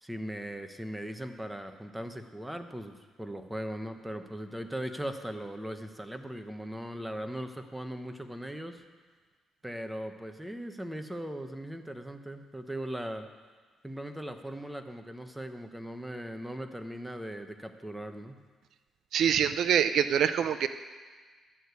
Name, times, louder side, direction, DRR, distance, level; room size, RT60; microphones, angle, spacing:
voice 1, 0.0-8.8 9.6-13.3 13.8-18.4, equal, 5° right, 7 dB, 1.0 m, -39 dB
voice 2, 19.1-20.7, right 9 dB, 70° right, 11 dB, 0.4 m, -25 dB
12.5 x 6.4 x 8.2 m, 1.4 s
cardioid pair, 90°, 0 cm